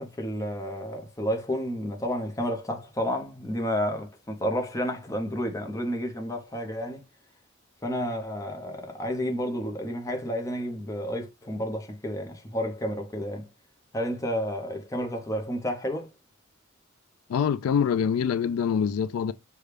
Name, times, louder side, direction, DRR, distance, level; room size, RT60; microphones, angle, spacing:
voice 1, 0.0-7.0 7.8-13.5 13.9-16.1, equal, 15° left, 0.8 m, -31 dB
voice 2, 17.3-19.3, left 7 dB, 85° left, 0.3 m, -25 dB
6.4 x 2.3 x 3.3 m
head